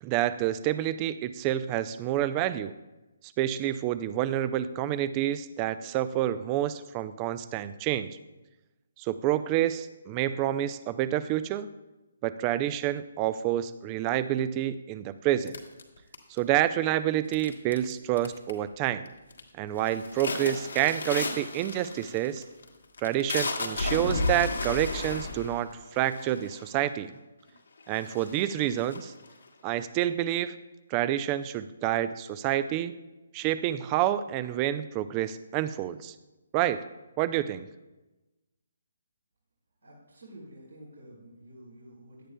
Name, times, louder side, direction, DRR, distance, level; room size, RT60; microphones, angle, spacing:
voice 1, 0.0-2.7 3.4-8.2 9.0-11.7 12.2-15.6 16.3-19.1 19.6-22.4 23.0-27.1 27.9-29.1 29.6-30.5 30.9-32.9 33.3-36.1 36.5-36.8 37.2-37.7, right 12 dB, 25° right, 14 dB, 0.4 m, -28 dB
sound 1, 15.5-16.6 17.3-17.9 18.2-18.7 19.1-19.4 19.8-26.8 27.5-27.6 27.9-29.5, left 3 dB, 70° left, 1.6 m, -33 dB
voice 2, 39.8-42.3, right 1 dB, 75° right, -6 dB, 3.5 m, -49 dB
16.5 x 11.0 x 2.2 m, 1.1 s
figure-of-eight pair, 140°, 0 cm